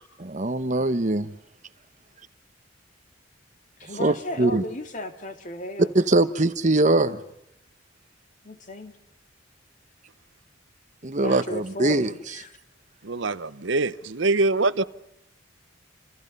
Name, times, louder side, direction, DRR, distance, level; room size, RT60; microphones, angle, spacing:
voice 1, 0.2-1.3 4.0-4.6 5.9-7.2 11.0-12.1, right 2 dB, 40° right, 1.0 m, -22 dB
voice 2, 3.8-5.9 8.4-9.0 11.2-12.5, left 1 dB, 40° left, 2.5 m, -35 dB
voice 3, 13.0-14.8, right 3 dB, 70° right, 0.9 m, -24 dB
28.5 x 27.5 x 5.5 m
head